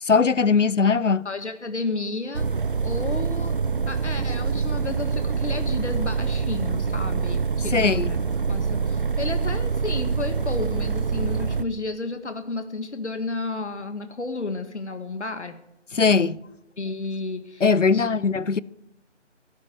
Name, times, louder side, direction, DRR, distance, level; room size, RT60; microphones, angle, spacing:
voice 1, 0.0-1.3 7.7-8.1 15.9-16.4 17.6-18.6, left 5 dB, 90° left, 0.8 m, -20 dB
voice 2, 1.2-2.5 2.8-3.6 3.9-8.2 8.5-15.6 16.8-18.1, left 3 dB, 70° left, 1.7 m, -32 dB
sound 1, 2.3-11.6, right 5 dB, 45° right, 0.8 m, -25 dB
17.0 x 13.5 x 4.9 m
figure-of-eight pair, 165°, 36 cm